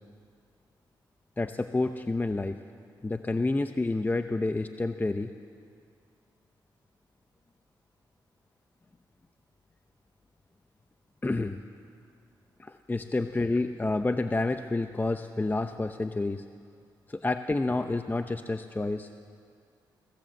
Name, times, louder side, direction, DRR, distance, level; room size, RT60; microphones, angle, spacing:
voice 1, 1.4-2.6 3.0-5.3 11.2-11.6 12.6-16.4 17.1-19.2, left 2 dB, 20° left, 8 dB, 0.8 m, -29 dB
25.0 x 18.5 x 7.8 m, 2.3 s
cardioid pair, 70°, 9 cm